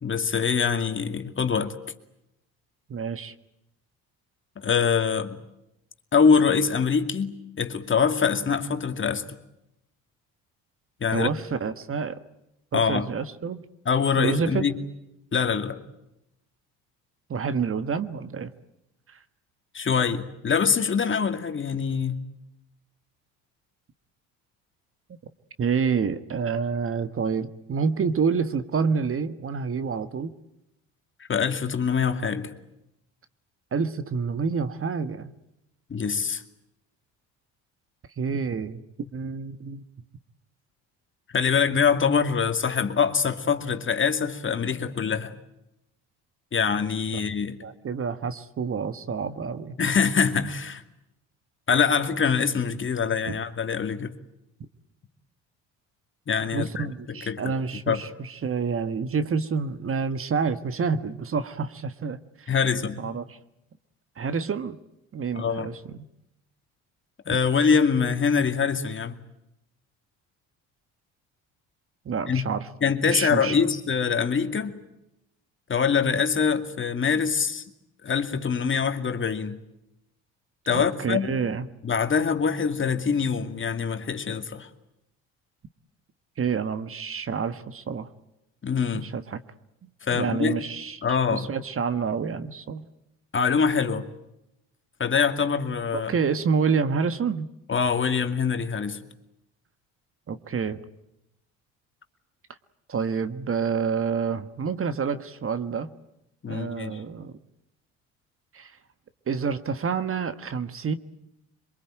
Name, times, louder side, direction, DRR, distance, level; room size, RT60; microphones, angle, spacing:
voice 1, 0.0-1.8 4.6-5.4 6.1-9.2 11.0-11.3 12.7-13.1 13.9-14.8 15.3-15.8 19.7-22.2 31.3-32.5 35.9-36.4 41.3-45.3 46.5-47.6 49.8-50.8 51.7-54.1 56.3-56.9 57.3-57.5 57.9-58.0 62.5-63.1 65.4-65.7 67.3-69.1 72.3-72.4 72.8-74.8 75.7-77.6 78.0-79.6 80.7-81.4 81.8-84.7 88.6-89.1 90.0-90.6 91.0-91.5 93.3-94.1 95.0-96.1 97.7-99.0 106.4-107.0, left 6 dB, 35° left, 2.4 m, -24 dB
voice 2, 2.9-3.3 11.1-12.2 12.7-13.6 14.2-14.7 17.3-18.5 19.1-19.2 25.6-30.3 33.7-35.3 38.2-38.8 39.1-39.8 47.1-47.2 47.6-49.7 53.3-53.4 56.5-62.5 63.0-63.4 64.2-64.8 65.1-66.0 72.0-72.7 73.1-73.5 80.7-81.7 86.4-88.1 88.9-89.4 89.8-92.8 95.9-97.5 100.3-100.8 102.9-105.9 106.5-107.4 108.5-108.7 109.3-110.9, right 5 dB, 40° right, 1.5 m, -28 dB
24.0 x 22.5 x 9.0 m
supercardioid pair, 75°, 34 cm